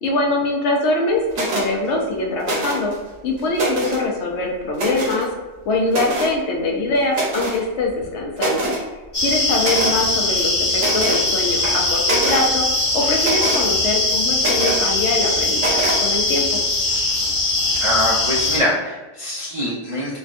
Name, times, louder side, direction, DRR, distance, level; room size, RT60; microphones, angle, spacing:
voice 1, 0.0-2.9 3.2-5.3 5.7-8.7 9.2-12.7 12.9-16.6, left 2 dB, 70° left, 0 dB, 0.9 m, -23 dB
sound 1, 1.3-1.7 2.4-2.9 3.4-4.0 4.7-5.2 5.9-6.3 7.1-7.6 8.0-8.1 8.4-8.8 9.6-10.0 10.8-11.2 11.6-12.5 13.2-13.6 14.4-14.9 15.6-16.0, right 2 dB, 70° right, 1.0 m, -24 dB
sound 2, 9.1-18.6, left 2 dB, 30° left, 0.9 m, -21 dB
voice 2, 17.8-20.2, left 1 dB, 50° right, -7 dB, 0.4 m, -23 dB
3.3 x 2.2 x 2.5 m, 1.2 s
omnidirectional pair, 1.3 m